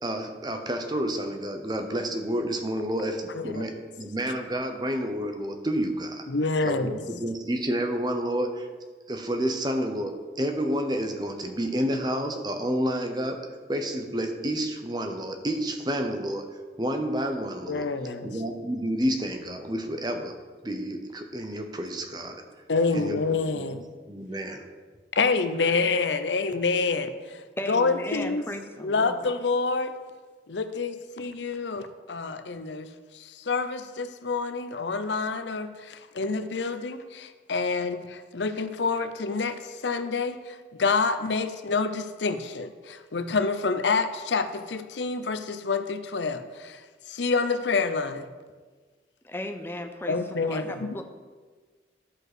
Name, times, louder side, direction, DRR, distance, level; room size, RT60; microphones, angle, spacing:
voice 1, 0.0-6.3 6.6-8.7 9.1-13.4 13.7-16.5 16.8-17.9 18.2-20.3 20.6-22.4 22.9-23.7 24.1-24.6, equal, 25° right, 5 dB, 0.8 m, -30 dB
voice 2, 6.3-7.0 17.7-18.3 22.7-23.8 25.2-27.1 27.7-28.4 28.8-29.9 30.5-32.9 33.1-39.6 39.8-46.8 47.1-48.3 50.1-50.9, left 4 dB, 85° left, 10 dB, 0.7 m, -27 dB
voice 3, 27.6-29.3 49.2-51.0, left 1 dB, 15° left, 5 dB, 0.7 m, -36 dB
11.5 x 5.3 x 6.1 m, 1.4 s
head